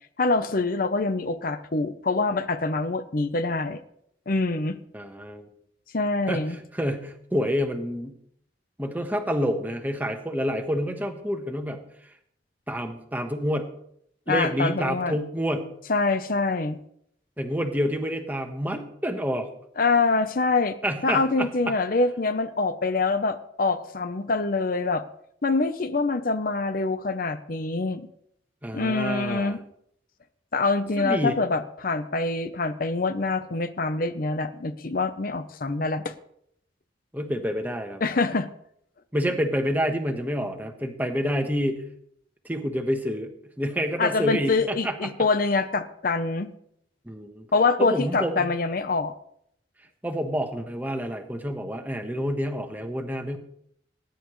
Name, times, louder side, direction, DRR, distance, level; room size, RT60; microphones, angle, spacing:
voice 1, 0.2-3.8 4.3-4.8 5.9-6.6 14.3-15.2 15.9-16.8 19.8-20.8 21.0-25.0 25.4-28.1 28.7-29.6 30.5-36.1 38.0-38.5 44.0-46.5 47.5-49.1, left 3 dB, 50° left, 10 dB, 0.7 m, -25 dB
voice 2, 4.9-5.5 6.3-8.2 8.8-11.8 12.7-13.7 14.3-15.7 17.4-19.5 20.8-21.8 28.6-29.6 31.0-31.4 37.1-38.0 39.1-41.8 42.4-43.3 43.6-45.1 47.0-47.5 47.8-48.6 50.0-53.4, equal, 10° right, 5 dB, 1.3 m, -28 dB
19.0 x 10.5 x 3.2 m, 0.70 s
head